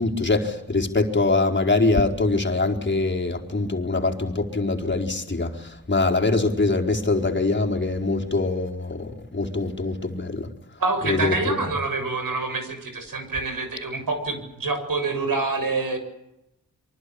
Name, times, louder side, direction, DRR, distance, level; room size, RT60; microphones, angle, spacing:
voice 1, 0.0-10.5 11.0-11.6, left 3 dB, 30° left, 1 dB, 4.5 m, -23 dB
voice 2, 10.8-16.0, right 3 dB, 70° right, 7 dB, 7.5 m, -26 dB
25.0 x 24.0 x 8.7 m, 0.88 s
cardioid pair, 45°, 35 cm